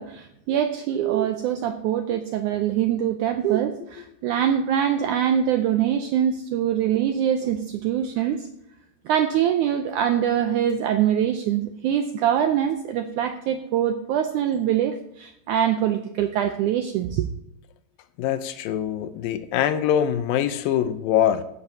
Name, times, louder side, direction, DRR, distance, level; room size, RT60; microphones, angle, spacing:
voice 1, 0.0-8.5 9.1-17.3, right 9 dB, 85° right, 7 dB, 1.7 m, -23 dB
voice 2, 18.2-21.4, left 10 dB, 80° left, 11 dB, 2.4 m, -23 dB
15.0 x 11.0 x 2.8 m, 0.81 s
omnidirectional pair, 4.2 m